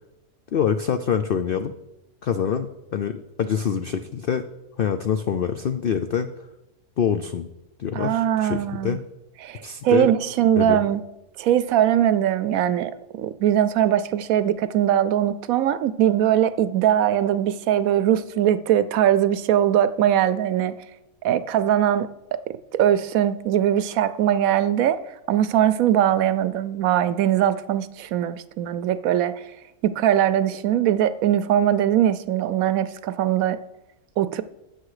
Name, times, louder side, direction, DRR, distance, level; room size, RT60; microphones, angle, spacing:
voice 1, 0.5-1.7 2.2-4.5 4.8-6.3 7.0-7.5 7.8-9.0 9.6-10.1 10.6-10.8, left 8 dB, 80° left, 0.5 m, -25 dB
voice 2, 7.9-9.0 9.4-11.0 11.4-20.7 21.2-29.5 29.8-33.6 34.2-34.4, right 11 dB, 70° right, 1.0 m, -21 dB
12.5 x 8.0 x 4.9 m
omnidirectional pair, 1.6 m